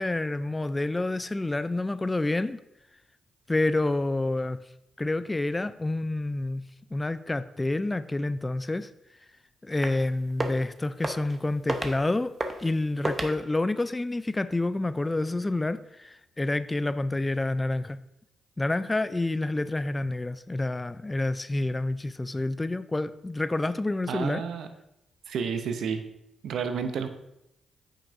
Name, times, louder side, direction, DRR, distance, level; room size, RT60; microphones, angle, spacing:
voice 1, 0.0-2.6 3.5-4.6 5.0-6.7 6.9-8.9 9.6-12.3 12.6-18.0 18.6-24.4, left 2 dB, 25° left, 14 dB, 0.4 m, -28 dB
sound 1, 9.8-10.1 10.3-10.6 11.0-11.4 11.7-12.0 12.4-12.7 13.0-13.3, right 2 dB, 30° right, 0.9 m, -31 dB
voice 2, 24.1-24.7 25.3-26.0 26.4-27.1, right 6 dB, 75° right, 8 dB, 0.6 m, -30 dB
8.4 x 5.6 x 2.6 m, 0.83 s
supercardioid pair, 50°, 0 cm